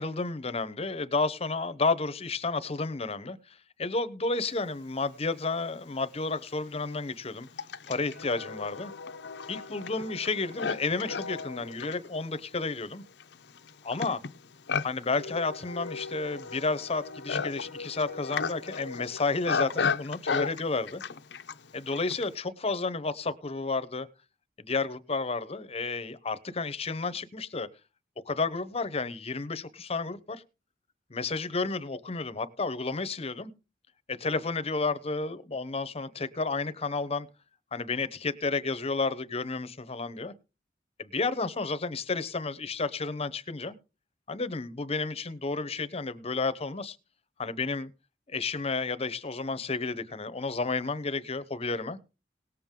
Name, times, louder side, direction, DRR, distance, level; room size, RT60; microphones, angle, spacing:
voice 1, 0.0-3.4 3.8-7.5 7.9-8.9 9.5-13.0 13.8-14.2 14.8-21.0 21.7-24.1 24.6-27.7 28.2-30.4 31.1-33.5 34.1-37.3 37.7-40.3 41.0-43.7 44.3-47.0 47.4-47.9 48.3-52.0, left 3 dB, 35° left, 0.9 m, -31 dB
Livestock farm animals working animals, 5.6-5.7 6.4-22.4, left 5 dB, 70° left, 0.7 m, -35 dB
18.5 x 7.4 x 3.7 m
head